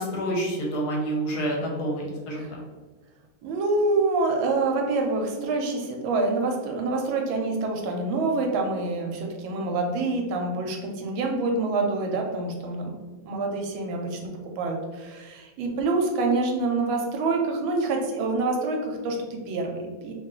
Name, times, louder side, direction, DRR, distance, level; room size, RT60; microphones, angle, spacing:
voice 1, 0.0-2.6, right 1 dB, 65° left, -1 dB, 1.1 m, -28 dB
voice 2, 3.4-12.9 13.2-20.1, right 3 dB, 80° right, 2 dB, 1.4 m, -26 dB
3.4 x 2.4 x 3.6 m, 1.3 s
omnidirectional pair, 2.2 m